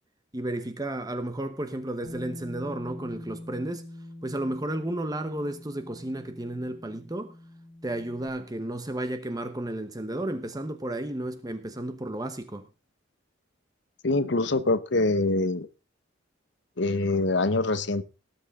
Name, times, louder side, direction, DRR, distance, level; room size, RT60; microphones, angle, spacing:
voice 1, 0.3-3.8 4.2-7.3 7.8-12.7, right 1 dB, 20° right, 1.0 m, -33 dB
Bass guitar, 2.0-8.3, left 1 dB, 60° right, 3.5 m, -44 dB
voice 2, 14.0-15.7 16.8-18.0, left 2 dB, 60° left, 1.0 m, -24 dB
18.5 x 8.3 x 3.7 m
head